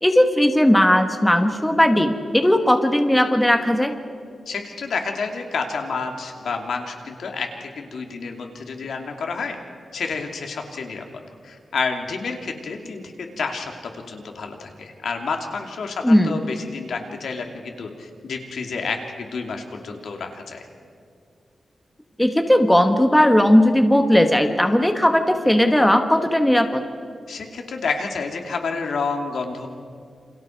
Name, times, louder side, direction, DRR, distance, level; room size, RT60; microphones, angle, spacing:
voice 1, 0.0-3.9 16.0-16.4 22.2-26.8, left 1 dB, 5° left, 6 dB, 1.4 m, -17 dB
voice 2, 4.5-9.6 9.9-20.7 27.3-29.7, left 4 dB, 80° left, 3 dB, 2.8 m, -29 dB
29.0 x 27.5 x 4.6 m, 2.4 s
wide cardioid pair, 160°, 0 cm